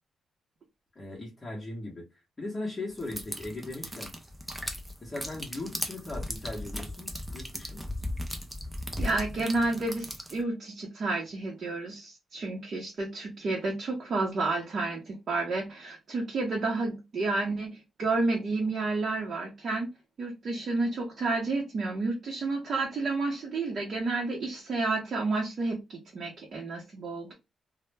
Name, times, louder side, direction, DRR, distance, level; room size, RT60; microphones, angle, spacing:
voice 1, 1.0-2.1 2.4-4.1 5.0-7.9, left 2 dB, 25° left, 0.8 m, -38 dB
sound 1, 3.0-10.4, equal, 10° right, 0.4 m, -37 dB
voice 2, 9.0-19.9 20.2-27.3, right 3 dB, 50° right, 0.7 m, -30 dB
2.0 x 2.0 x 3.2 m
wide cardioid pair, 140°, 0 cm